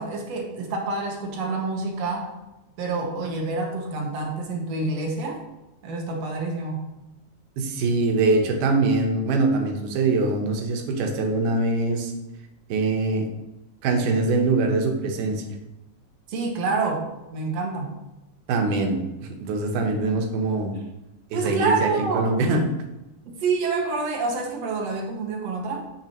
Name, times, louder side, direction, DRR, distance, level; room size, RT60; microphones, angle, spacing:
voice 1, 0.0-2.3 2.8-5.4 5.8-6.8 16.3-18.0 21.3-22.3 23.3-25.8, right 3 dB, 65° right, 2 dB, 2.0 m, -27 dB
voice 2, 7.6-12.1 12.7-13.3 13.8-15.4 18.5-20.8 21.3-22.6, right 3 dB, 85° right, 3 dB, 2.5 m, -23 dB
9.0 x 6.5 x 3.0 m, 0.98 s
omnidirectional pair, 3.5 m